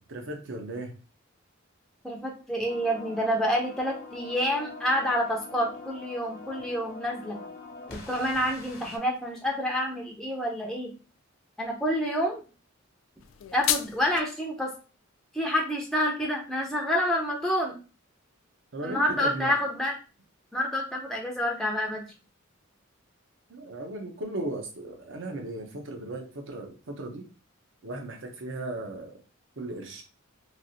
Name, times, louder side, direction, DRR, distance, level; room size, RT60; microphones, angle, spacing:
voice 1, 0.1-0.9 18.7-19.5 23.5-27.3 27.8-29.2 29.6-30.0, right 2 dB, 60° right, 3 dB, 0.7 m, -36 dB
voice 2, 2.0-7.4 7.9-10.9 11.6-12.4 13.5-14.7 15.3-17.8 18.8-19.9 20.5-22.0, equal, ahead, -1 dB, 0.5 m, -28 dB
sound 1, 2.6-9.0, left 3 dB, 50° left, 0.7 m, -43 dB
sound 2, 13.2-14.2, left 11 dB, 70° left, 0.3 m, -30 dB
3.2 x 2.4 x 2.7 m, 0.33 s
head